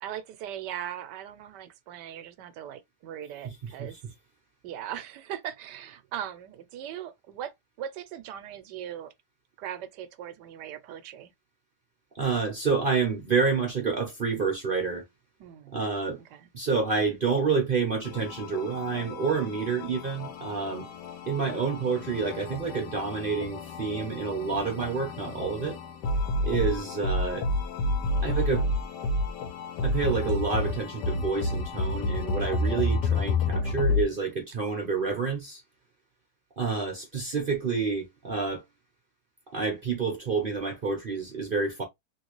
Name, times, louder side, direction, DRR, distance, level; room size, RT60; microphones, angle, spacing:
voice 1, 0.0-4.0 4.6-7.5 7.8-9.1 9.6-11.3 15.4-15.8 16.3-16.5 32.7-32.9, right 10 dB, 80° right, 1.2 m, -39 dB
voice 2, 3.4-3.9 12.1-15.0 15.7-16.2 16.5-20.9 21.3-25.8 26.4-27.5 28.2-28.7 29.8-35.6 36.6-38.6 39.5-41.8, right 5 dB, 45° right, 0.7 m, -28 dB
sound 1, 18.0-34.0, left 2 dB, 75° left, 1.3 m, -30 dB
3.1 x 2.9 x 3.0 m
omnidirectional pair, 1.9 m